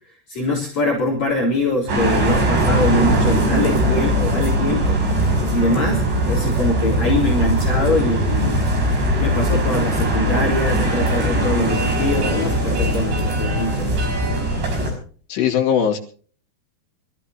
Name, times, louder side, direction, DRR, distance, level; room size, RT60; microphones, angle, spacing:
voice 1, 0.3-5.0 5.5-8.7 9.2-14.0, left 2 dB, 45° left, -1 dB, 4.9 m, -23 dB
sound 1, 1.9-14.9, right 1 dB, 85° right, 8.0 m, -20 dB
voice 2, 15.3-16.0, left 8 dB, 85° left, 2 dB, 4.6 m, -19 dB
25.5 x 14.5 x 2.9 m, 0.42 s
omnidirectional pair, 4.9 m